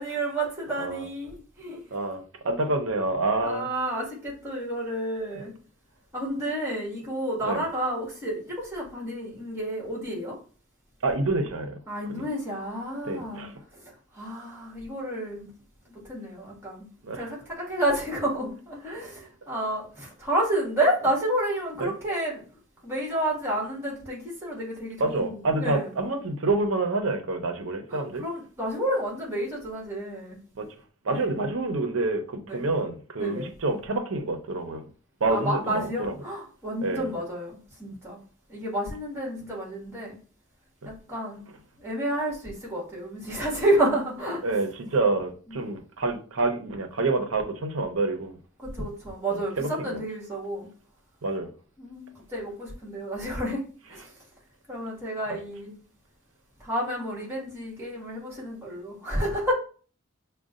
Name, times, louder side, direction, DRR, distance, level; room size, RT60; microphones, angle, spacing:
voice 1, 0.0-1.8 3.4-5.5 6.1-10.4 11.9-13.5 14.1-15.5 15.9-16.9 17.1-22.4 22.8-25.9 27.9-30.4 31.1-31.3 32.5-32.6 33.2-33.5 35.3-38.2 38.5-40.2 40.8-41.4 41.8-44.6 45.5-45.6 48.6-50.7 51.8-53.6 53.9-54.1 54.7-55.7 56.6-59.5, right 1 dB, 15° right, 1.7 m, -30 dB
voice 2, 1.9-3.7 7.4-7.6 11.0-11.8 12.1-12.3 13.0-13.5 17.0-17.3 18.9-19.0 21.8-21.9 25.0-28.2 30.6-30.7 31.0-34.8 35.2-36.1 36.8-37.1 44.4-48.3 49.3-50.0 51.2-51.5, right 2 dB, 85° right, 0.7 m, -27 dB
6.3 x 2.3 x 2.4 m
head